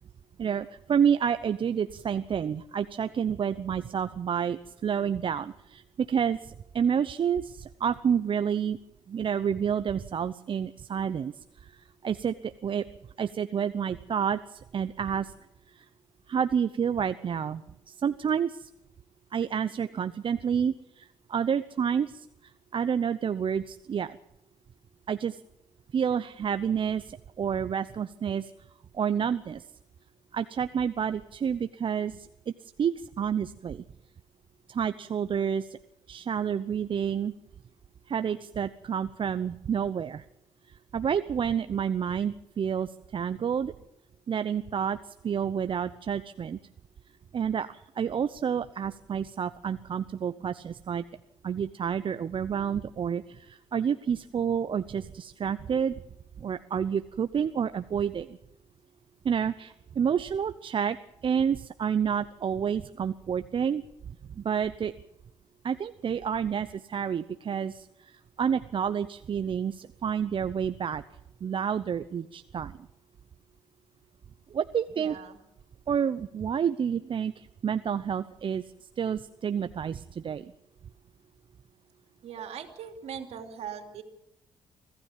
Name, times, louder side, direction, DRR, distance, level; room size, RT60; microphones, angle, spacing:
voice 1, 0.4-8.8 9.1-11.3 11.6-12.8 13.2-15.3 15.7-15.8 16.3-18.7 19.3-22.3 22.7-24.2 25.1-25.4 25.9-28.5 28.9-29.6 30.3-32.5 32.8-33.8 34.7-35.8 36.1-37.3 38.1-40.2 40.7-43.7 44.3-46.6 47.3-51.0 51.4-56.0 56.4-58.4 59.2-61.0 61.2-63.8 64.3-64.9 65.6-71.0 71.4-72.8 74.5-75.2 75.9-78.6 79.0-80.5, right 7 dB, 50° right, 12 dB, 0.8 m, -29 dB
voice 2, 75.0-75.4 82.2-84.0, right 8 dB, 65° right, 6 dB, 3.0 m, -40 dB
25.0 x 15.0 x 7.4 m, 0.88 s
hypercardioid pair, 55°, 11 cm